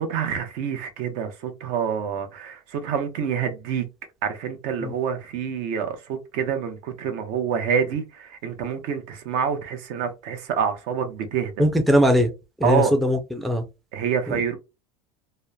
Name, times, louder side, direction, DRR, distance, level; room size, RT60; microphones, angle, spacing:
voice 1, 0.0-3.8 4.2-11.6 12.6-12.9 13.9-14.6, right 7 dB, 60° right, 0.7 m, -27 dB
voice 2, 11.6-12.3 12.6-13.6 14.3-14.4, equal, ahead, 0.4 m, -20 dB
2.9 x 2.0 x 2.2 m
supercardioid pair, 130°, 14 cm